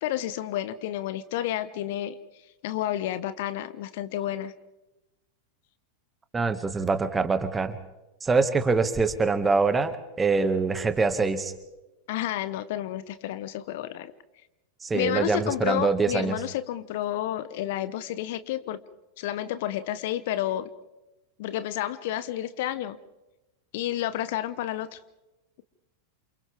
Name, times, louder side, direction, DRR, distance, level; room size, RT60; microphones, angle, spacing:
voice 1, 0.0-2.2 2.6-4.5 12.1-14.1 14.9-18.8 19.2-20.7 21.4-23.0 23.7-25.0, left 12 dB, 50° left, 14 dB, 1.1 m, -30 dB
voice 2, 6.3-7.8 8.2-11.5 14.8-16.4, right 4 dB, 15° right, 10 dB, 2.0 m, -24 dB
29.0 x 28.5 x 3.6 m, 1.0 s
figure-of-eight pair, 90°, 0 cm